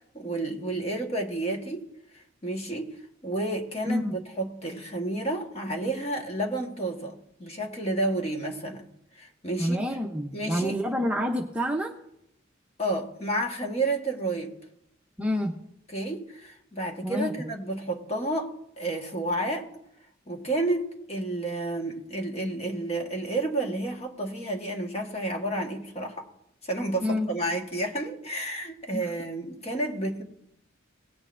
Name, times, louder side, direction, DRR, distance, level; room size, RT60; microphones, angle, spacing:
voice 1, 0.1-1.8 2.1-2.9 3.2-8.8 9.1-9.8 10.3-10.7 12.8-14.5 15.9-19.7 20.3-26.3 26.6-30.2, right 2 dB, 30° left, 2 dB, 1.3 m, -31 dB
voice 2, 9.6-11.9 15.2-15.5 17.0-17.3 27.0-27.3 28.9-29.1, equal, 5° right, 0 dB, 0.7 m, -28 dB
18.5 x 8.8 x 2.5 m, 0.77 s
head